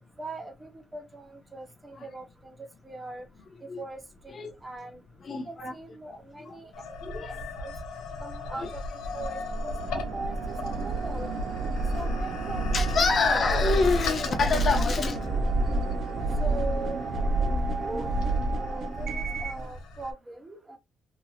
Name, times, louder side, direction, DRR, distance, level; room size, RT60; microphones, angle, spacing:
voice 1, 0.0-3.3 3.8-5.0 5.4-7.0 7.3-7.7 8.2-8.8 9.1-11.3 11.9-13.4 14.7-15.4 16.4-17.0 17.7-18.1 18.5-20.8, right 2 dB, 20° right, 1.0 m, -40 dB
voice 2, 5.2-5.7 6.4-6.6 7.0-7.3 8.6-8.7 9.9-10.1 12.7-15.2, left 4 dB, 45° left, 0.7 m, -27 dB
sound 1, 6.7-20.1, left 2 dB, 90° left, 0.7 m, -37 dB
sound 2, 9.0-19.7, right 2 dB, 60° right, 0.6 m, -29 dB
2.9 x 2.7 x 2.3 m
cardioid pair, 90°, 0 cm